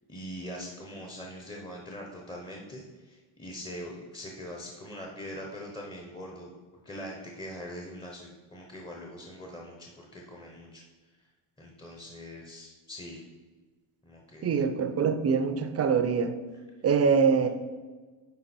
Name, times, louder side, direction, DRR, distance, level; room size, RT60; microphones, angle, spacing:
voice 1, 0.1-6.5 6.8-10.8 11.6-13.2 14.0-14.6 16.5-16.6 17.4-17.5, equal, 10° left, -1 dB, 0.8 m, -42 dB
voice 2, 14.4-16.3 16.8-17.5, right 6 dB, 30° right, 9 dB, 0.6 m, -24 dB
9.6 x 3.7 x 4.3 m, 1.3 s
cardioid pair, 130°, 48 cm